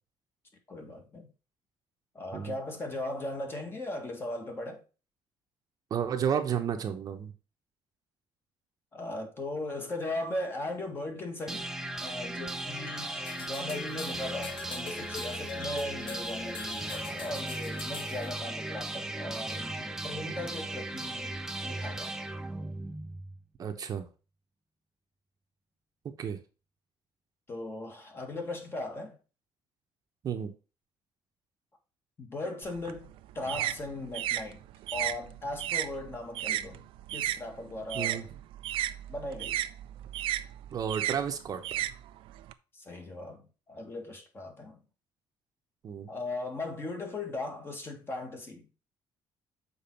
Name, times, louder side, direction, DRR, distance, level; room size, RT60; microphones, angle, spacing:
voice 1, 0.7-1.3 2.1-4.8 8.9-11.7 12.0-21.3 21.6-22.2 27.5-29.2 32.2-34.6 34.9-36.8 37.1-38.2 39.1-39.6 42.7-44.8 46.1-48.7, left 2 dB, 25° left, 1.8 m, -38 dB
voice 2, 5.9-7.3 23.6-24.1 26.2-26.4 30.2-30.5 37.9-38.3 40.7-41.6 45.8-46.1, right 8 dB, 45° right, 0.9 m, -32 dB
sound 1, 11.5-23.4, right 2 dB, 5° right, 0.6 m, -37 dB
sound 2, 12.7-18.4, left 5 dB, 70° left, 1.0 m, -43 dB
sound 3, 32.6-37.4 37.7-42.5, right 13 dB, 80° right, 0.5 m, -34 dB
7.0 x 4.7 x 4.4 m
cardioid pair, 140°, 9 cm